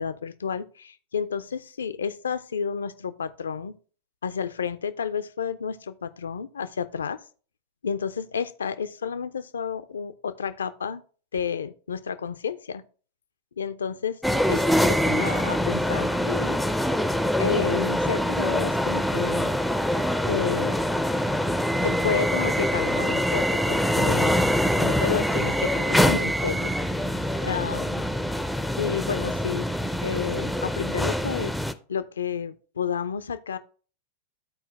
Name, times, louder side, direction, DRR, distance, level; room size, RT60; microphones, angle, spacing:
voice 1, 0.0-3.8 4.2-7.2 7.8-11.0 11.3-12.8 13.6-14.2 14.5-16.7 17.4-19.5 20.2-20.8 21.8-24.5 24.7-27.1 27.4-28.0 28.8-29.7 30.0-31.6 31.9-33.6, left 7 dB, 70° left, 0.5 m, -31 dB
sound 1, 14.2-31.7, equal, ahead, 0.5 m, -24 dB
12.5 x 4.4 x 3.1 m
figure-of-eight pair, 90°, 0 cm